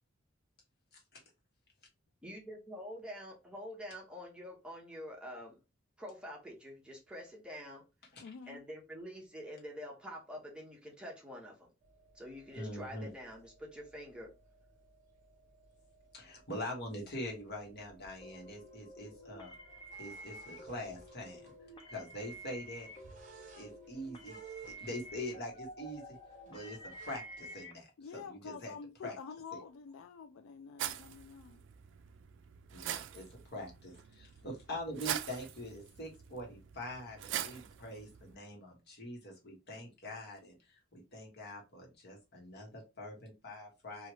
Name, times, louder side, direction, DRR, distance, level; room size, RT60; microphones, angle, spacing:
voice 1, 2.2-5.6 6.0-7.8 8.5-11.7 12.1-14.3, equal, 5° right, 0.9 m, -46 dB
voice 2, 8.2-8.6 28.0-31.6, left 6 dB, 80° left, 0.4 m, -48 dB
sound 1, 11.8-27.6, right 5 dB, 40° right, 0.7 m, -59 dB
voice 3, 12.5-13.1 16.1-19.5 20.0-21.4 21.9-22.9 23.6-24.4 24.7-26.2 26.5-27.9 28.1-28.7 29.0-29.1 32.7-44.1, left 1 dB, 55° left, 1.1 m, -44 dB
sound 2, 18.2-27.7, right 1 dB, 25° left, 0.6 m, -50 dB
sound 3, 30.8-38.3, right 10 dB, 65° right, 0.3 m, -43 dB
3.1 x 2.4 x 2.9 m
head